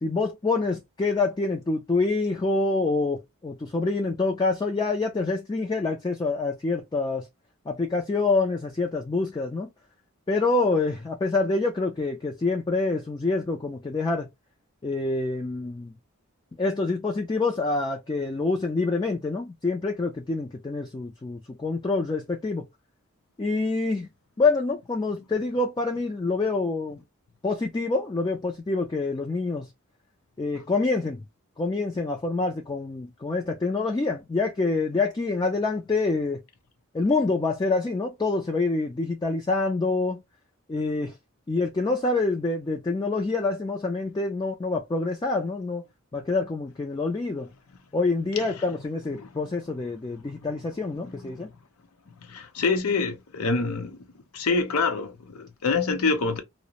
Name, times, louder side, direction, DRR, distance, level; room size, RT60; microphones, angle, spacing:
voice 1, 0.0-7.3 7.7-9.7 10.3-14.3 14.8-15.9 16.6-22.6 23.4-24.1 24.4-27.0 27.4-29.7 30.4-31.2 31.6-36.4 36.9-40.2 40.7-41.2 41.5-45.8 46.1-47.5 47.9-51.5, left 3 dB, 20° left, 0.3 m, -26 dB
voice 2, 52.2-54.0 54.3-56.4, left 4 dB, 85° left, 0.6 m, -26 dB
2.4 x 2.0 x 2.8 m
head